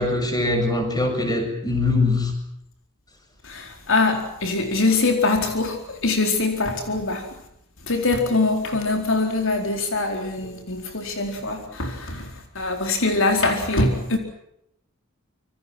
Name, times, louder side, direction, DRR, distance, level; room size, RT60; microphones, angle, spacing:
voice 1, 0.0-2.3 11.4-11.6, left 2 dB, 20° left, 5 dB, 7.2 m, -22 dB
voice 2, 3.4-7.3 7.8-14.2, left 3 dB, 65° left, 4 dB, 4.4 m, -23 dB
27.5 x 25.5 x 6.1 m, 0.78 s
head